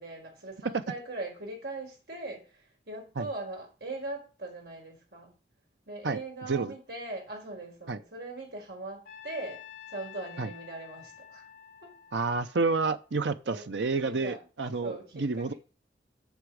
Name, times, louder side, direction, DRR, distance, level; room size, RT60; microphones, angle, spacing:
voice 1, 0.0-5.3 5.9-9.6 9.9-11.4 11.8-11.9 13.4-13.7 14.0-14.4 14.8-15.6, right 2 dB, 65° right, 4.8 m, -40 dB
Trumpet, 9.1-13.3, left 10 dB, 55° left, 2.9 m, -49 dB
voice 2, 12.1-15.5, right 3 dB, 90° right, 0.7 m, -29 dB
8.3 x 6.0 x 7.8 m
head